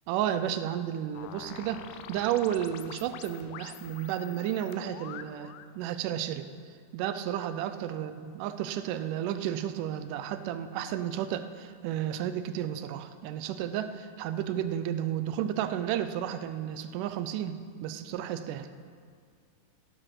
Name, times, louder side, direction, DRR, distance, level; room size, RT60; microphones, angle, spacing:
voice 1, 0.1-6.5 6.9-18.7, right 10 dB, 80° right, 11 dB, 1.9 m, -32 dB
sound 1, 1.1-5.7, left 11 dB, 85° left, 1.8 m, -46 dB
16.5 x 8.1 x 6.0 m, 2.2 s
omnidirectional pair, 4.2 m